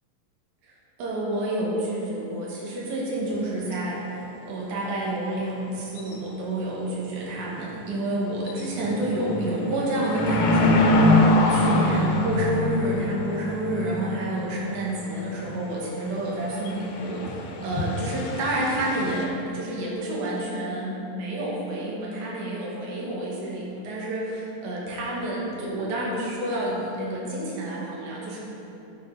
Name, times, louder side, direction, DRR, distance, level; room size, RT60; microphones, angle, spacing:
voice 1, 1.0-28.4, right 1 dB, 60° right, -5 dB, 2.8 m, -29 dB
sound 1, 3.3-3.4 3.7-3.8 6.0-6.4 6.6-6.7 7.3-7.6 8.0-8.1 8.4-19.2, left 1 dB, 75° left, 2.6 m, -25 dB
11.5 x 6.2 x 4.0 m, 3.0 s
omnidirectional pair, 4.2 m